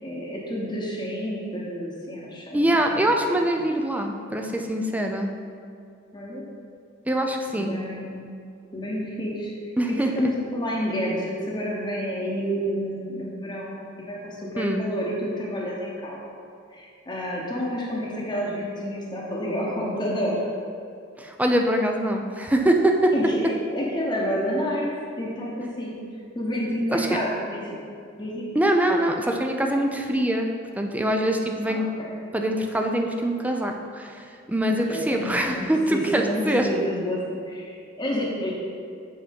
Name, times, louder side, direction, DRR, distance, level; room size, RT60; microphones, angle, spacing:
voice 1, 0.0-3.1 6.1-6.4 7.6-8.2 8.7-9.5 10.0-16.4 16.7-20.5 23.1-26.0 26.3-27.8 28.2-28.5 31.7-32.1 34.6-38.5, equal, 25° left, -5 dB, 1.0 m, -29 dB
voice 2, 2.5-5.3 7.1-7.8 9.8-10.1 14.6-14.8 21.2-23.1 26.9-27.1 28.5-31.9 32.3-36.7, right 1 dB, 10° right, 3 dB, 0.5 m, -24 dB
7.6 x 4.2 x 5.2 m, 2.4 s
head